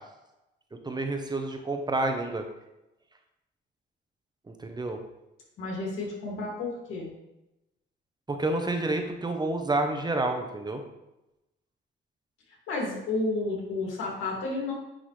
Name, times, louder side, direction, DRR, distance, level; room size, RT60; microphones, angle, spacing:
voice 1, 0.8-2.4 4.5-5.0 8.3-10.8, right 2 dB, 20° right, 5 dB, 0.9 m, -29 dB
voice 2, 5.6-7.1 12.7-14.7, left 3 dB, 90° left, -2 dB, 2.4 m, -31 dB
10.0 x 3.9 x 3.3 m, 0.94 s
cardioid pair, 90°, 20 cm